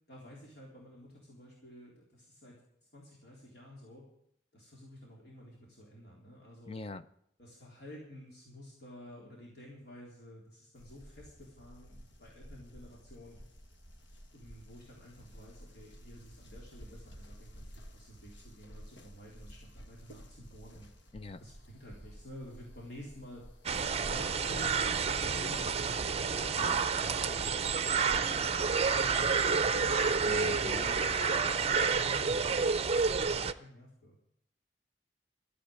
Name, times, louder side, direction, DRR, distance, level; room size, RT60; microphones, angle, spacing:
voice 1, 0.1-2.6 2.9-4.0 4.5-6.8 7.4-13.4 14.3-20.9 21.4-28.5 28.9-34.3, equal, 65° left, -4 dB, 3.7 m, -51 dB
voice 2, 6.7-7.1 21.1-21.4 30.3-30.9, left 3 dB, 35° left, 12 dB, 0.6 m, -41 dB
sound 1, 10.8-26.4, equal, 90° left, 1.6 m, -53 dB
sound 2, 23.7-33.5, right 5 dB, 35° right, 0.6 m, -29 dB
13.5 x 8.4 x 8.8 m, 0.72 s
head